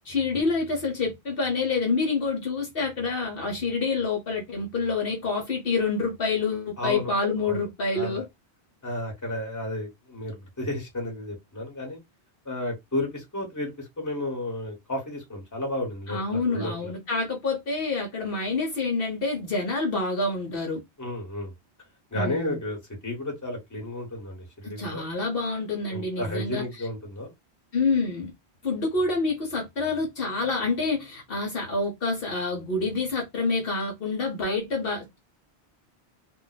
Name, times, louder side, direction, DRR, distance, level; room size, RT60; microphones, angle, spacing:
voice 1, 0.1-8.3 16.1-20.8 22.1-22.6 24.6-26.6 27.7-28.3 28.6-35.2, left 3 dB, 60° left, 1.0 m, -27 dB
voice 2, 6.8-7.1 7.4-7.7 7.9-8.2 8.8-12.0 12.4-16.9 21.0-21.5 22.1-22.8 23.0-25.0 25.9-27.3, left 1 dB, 15° left, 1.2 m, -32 dB
2.5 x 2.2 x 3.9 m
omnidirectional pair, 1.1 m